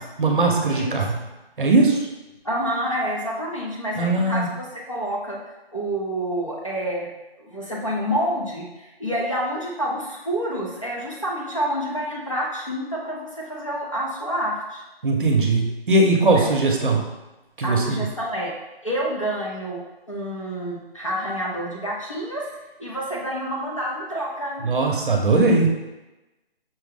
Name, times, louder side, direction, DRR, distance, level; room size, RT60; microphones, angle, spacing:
voice 1, 0.2-1.2 1.6-2.0 4.0-4.5 15.0-17.1 17.6-18.1 24.6-25.7, right 2 dB, 55° right, 2 dB, 0.7 m, -19 dB
voice 2, 2.4-5.4 5.7-7.1 7.4-14.8 16.3-16.5 17.6-18.5 18.8-22.5 22.8-24.7, equal, 30° left, -5 dB, 0.5 m, -28 dB
5.6 x 2.0 x 3.5 m, 1.0 s
hypercardioid pair, 180°, 31 cm